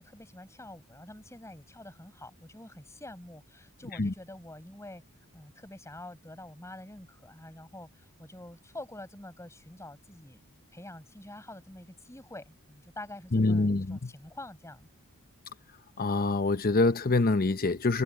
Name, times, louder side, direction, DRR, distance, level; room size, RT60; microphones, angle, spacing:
voice 1, 0.0-5.0 5.3-10.4 10.7-14.9, left 1 dB, 15° left, 7.5 m, -47 dB
voice 2, 13.3-14.1 16.0-18.0, left 2 dB, 45° left, 0.9 m, -25 dB
head